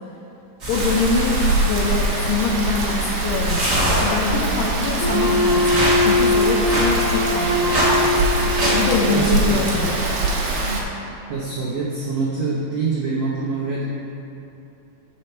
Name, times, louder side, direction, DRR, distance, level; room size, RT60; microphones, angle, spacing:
sound 1, 0.6-9.8, equal, 50° right, 0.9 m, -26 dB
voice 1, 0.7-7.8 8.7-10.2, left 4 dB, 90° left, -1 dB, 1.9 m, -24 dB
Rain, 0.7-10.8, right 2 dB, 75° right, 2.5 m, -23 dB
Wind instrument woodwind instrument, 5.0-9.1, left 2 dB, 75° left, 2.2 m, -21 dB
voice 2, 9.1-9.7 11.3-13.9, right 4 dB, 90° right, -8 dB, 1.5 m, -25 dB
6.7 x 6.2 x 4.4 m, 2.9 s
omnidirectional pair, 4.6 m